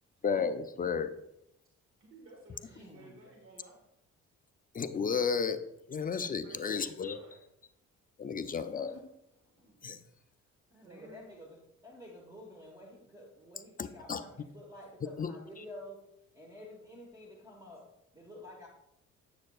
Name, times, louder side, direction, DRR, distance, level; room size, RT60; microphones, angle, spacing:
voice 1, 0.2-1.1 4.7-5.6 5.9-7.2 8.2-8.9 9.8-10.0 13.8-14.2 15.2-15.3, left 6 dB, 30° left, 0.4 m, -32 dB
voice 2, 2.0-3.8 6.1-7.4 10.8-11.2, right 2 dB, 45° right, 1.5 m, -54 dB
voice 3, 2.6-3.3 8.3-9.8 10.7-18.7, left 1 dB, 10° right, 1.3 m, -51 dB
7.5 x 7.4 x 2.3 m
cardioid pair, 90°, 30 cm